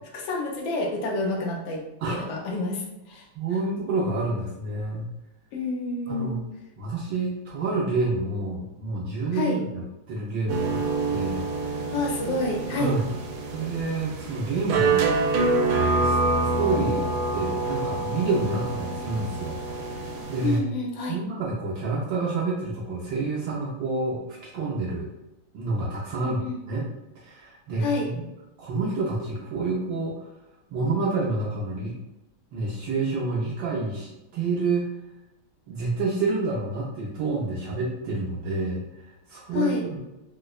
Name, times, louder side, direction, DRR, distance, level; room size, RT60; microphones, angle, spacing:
voice 1, 0.1-3.3 5.5-6.4 9.3-9.6 11.9-12.9 20.4-21.2 26.2-26.6 27.8-28.1 39.5-39.8, left 3 dB, 75° left, 0 dB, 1.3 m, -28 dB
voice 2, 3.3-5.1 6.1-6.4 6.8-9.8 10.1-10.8 11.1-11.9 12.3-12.4 12.8-13.1 13.5-15.6 15.9-17.0 17.3-19.6 20.3-20.7 21.1-25.1 25.5-26.4 26.7-26.8 27.2-28.2 28.6-30.3 30.7-31.9 32.5-34.9 35.7-40.0, right 3 dB, 75° right, -5 dB, 1.2 m, -28 dB
sound 1, 10.5-20.6, right 3 dB, 90° right, 1.5 m, -26 dB
4.7 x 2.1 x 2.3 m, 0.95 s
omnidirectional pair, 2.3 m